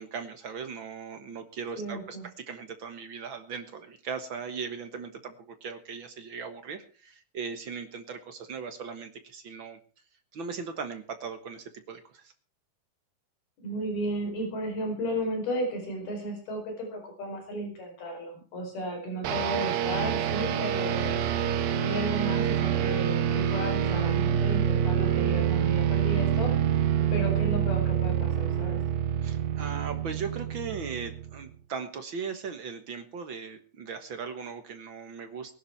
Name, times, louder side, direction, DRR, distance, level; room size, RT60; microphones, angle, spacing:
voice 1, 0.0-9.8 10.3-12.3 29.2-35.5, right 5 dB, 60° right, 8 dB, 1.3 m, -38 dB
voice 2, 1.8-2.3 13.6-21.2 21.8-26.5 27.1-28.8, equal, 85° left, 2 dB, 6.6 m, -34 dB
sound 1, 19.2-31.5, right 9 dB, 75° right, 3.0 m, -27 dB
20.0 x 11.5 x 4.6 m, 0.37 s
omnidirectional pair, 4.3 m